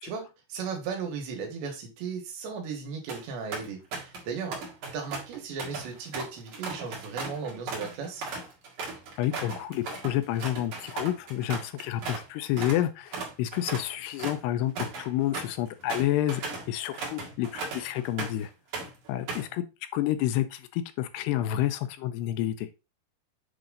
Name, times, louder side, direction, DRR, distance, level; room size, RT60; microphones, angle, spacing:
voice 1, 0.0-4.6 4.9-8.2, right 5 dB, 85° right, 2 dB, 3.8 m, -36 dB
sound 1, 2.9-3.2 3.5-4.3 4.5-12.3 12.6-12.8 13.1-18.5 18.7-19.5, right 4 dB, 55° right, 2.8 m, -37 dB
voice 2, 9.2-18.5 19.1-19.7 19.9-22.7, left 13 dB, 80° left, 10 dB, 2.6 m, -29 dB
8.0 x 3.7 x 3.8 m, 0.28 s
omnidirectional pair, 4.9 m